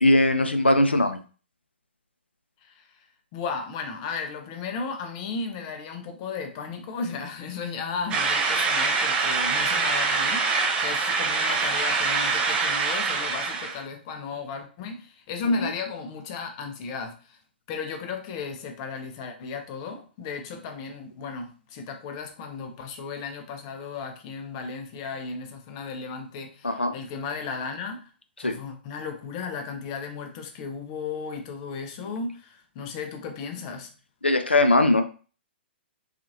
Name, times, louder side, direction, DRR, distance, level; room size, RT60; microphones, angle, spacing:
voice 1, 0.0-1.2 15.6-15.7 26.6-26.9 28.4-28.6 34.2-35.0, left 1 dB, 85° left, 7 dB, 0.4 m, -20 dB
voice 2, 2.6-3.0 3.3-17.4 17.7-28.0 28.4-33.9, left 4 dB, 35° left, 5 dB, 0.5 m, -35 dB
sound 1, 8.1-13.8, right 4 dB, 20° right, 0.4 m, -24 dB
2.8 x 2.4 x 2.7 m, 0.38 s
figure-of-eight pair, 115°, 6 cm